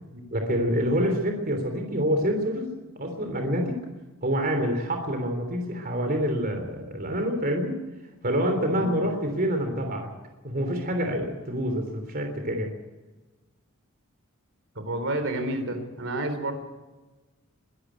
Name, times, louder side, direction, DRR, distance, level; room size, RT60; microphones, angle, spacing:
voice 1, 0.3-2.7 2.9-3.8 4.2-7.8 8.2-10.1 10.4-12.7, equal, 45° right, 4 dB, 3.3 m, -27 dB
voice 2, 14.8-16.5, right 1 dB, 60° right, 8 dB, 3.7 m, -30 dB
23.0 x 13.0 x 9.2 m, 1.2 s
head